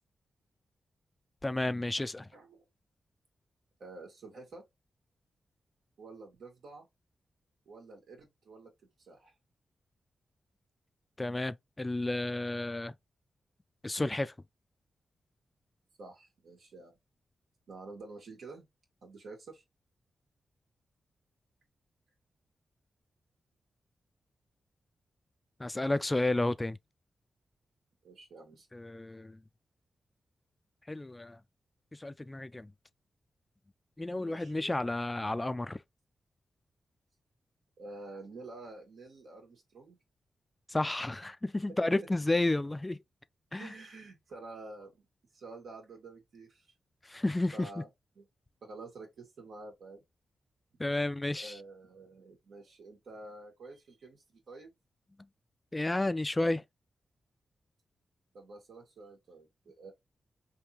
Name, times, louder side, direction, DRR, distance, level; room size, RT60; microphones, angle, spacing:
voice 1, 1.4-2.3 11.2-12.9 13.8-14.3 25.6-26.8 28.7-29.4 30.9-31.4 31.9-32.7 34.0-35.8 40.7-43.0 43.5-43.7 47.0-47.7 50.8-51.5 55.7-56.6, left 2 dB, 20° left, 0.3 m, -31 dB
voice 2, 2.3-2.7 3.8-4.6 6.0-6.9 7.6-8.7 9.0-9.3 16.0-17.0 17.7-18.6 19.0-19.6 28.0-28.7 34.1-34.7 37.8-40.0 42.0-42.1 43.5-45.0 45.3-46.7 47.5-47.9 48.1-48.2 48.6-50.0 50.8-50.9 51.3-54.7 58.3-59.9, right 3 dB, 80° right, 1.6 m, -49 dB
3.6 x 2.8 x 2.8 m
cardioid pair, 65°, 0 cm